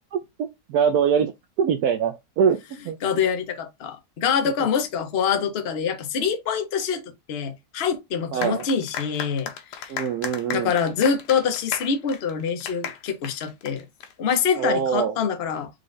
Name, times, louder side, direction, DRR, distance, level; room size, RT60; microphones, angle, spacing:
voice 1, 0.7-1.3 1.6-2.6 2.8-3.0 8.3-8.7 9.9-10.7 14.6-15.2, right 7 dB, 75° right, 1.1 m, -22 dB
voice 2, 3.0-7.0 7.3-9.9 10.5-13.9 14.2-15.7, left 7 dB, 45° left, 0.9 m, -25 dB
sound 1, 8.4-14.4, left 8 dB, 90° left, 1.3 m, -35 dB
5.0 x 2.4 x 3.8 m
omnidirectional pair, 1.7 m